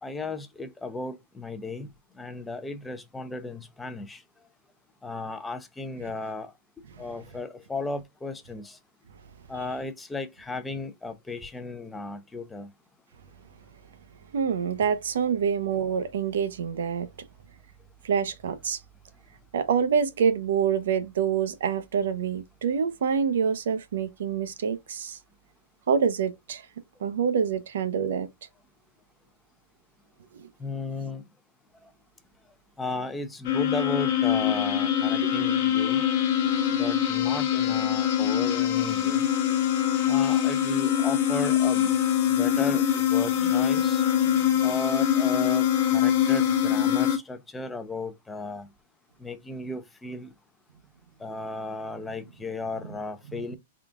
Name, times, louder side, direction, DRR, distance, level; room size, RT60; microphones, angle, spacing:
voice 1, 0.0-1.9 2.2-4.2 5.0-6.5 7.0-8.8 9.5-12.7 30.6-31.2 32.8-36.0 36.7-39.2 40.1-41.9 42.3-44.0 44.6-45.7 45.9-48.7 49.2-50.3 51.2-53.6, left 3 dB, 10° left, 0.5 m, -35 dB
voice 2, 14.3-17.1 18.0-18.8 19.5-25.2 25.9-26.6 27.0-28.3 53.3-53.4, right 7 dB, 80° right, 0.7 m, -26 dB
sound 1, 33.4-47.2, left 10 dB, 50° left, 1.0 m, -23 dB
3.7 x 2.3 x 3.6 m
hypercardioid pair, 155°, 0 cm